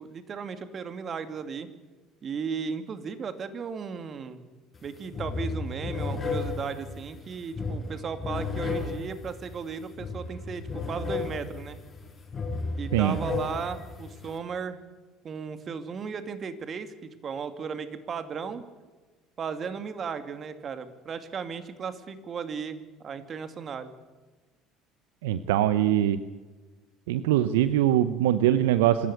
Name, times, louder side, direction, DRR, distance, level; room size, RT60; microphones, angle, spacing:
voice 1, 0.0-1.7 2.2-4.4 4.8-11.8 12.7-14.8 15.2-18.6 19.4-23.9, right 6 dB, 45° right, 10 dB, 2.4 m, -35 dB
sound 1, 4.7-4.9 5.1-14.4, left 3 dB, 35° left, 6.2 m, -34 dB
voice 2, 25.2-26.2 27.1-29.1, right 12 dB, 80° right, 14 dB, 0.7 m, -22 dB
25.5 x 13.5 x 8.2 m, 1.3 s
hypercardioid pair, 65°, 0 cm